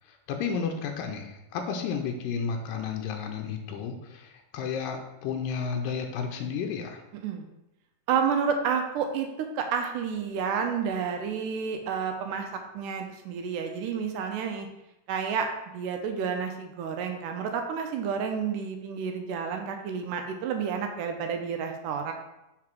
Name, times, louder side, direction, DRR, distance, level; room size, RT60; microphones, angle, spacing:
voice 1, 0.3-7.0, left 6 dB, 90° left, 4 dB, 2.3 m, -32 dB
voice 2, 8.1-14.7 15.1-22.1, right 6 dB, 80° right, 5 dB, 2.0 m, -30 dB
4.9 x 4.8 x 5.9 m, 0.93 s
omnidirectional pair, 3.8 m